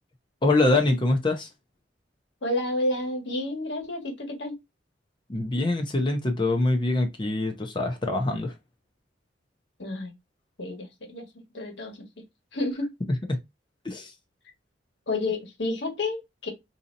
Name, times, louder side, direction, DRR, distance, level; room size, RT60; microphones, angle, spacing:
voice 1, 0.4-1.5 5.3-8.5 13.3-13.4 13.8-14.1, left 2 dB, 25° left, 0.6 m, -24 dB
voice 2, 2.4-4.6 9.8-10.1 10.6-11.3 11.5-11.9 12.5-12.9 15.1-16.5, left 2 dB, 70° left, 1.3 m, -30 dB
4.0 x 2.8 x 2.6 m
head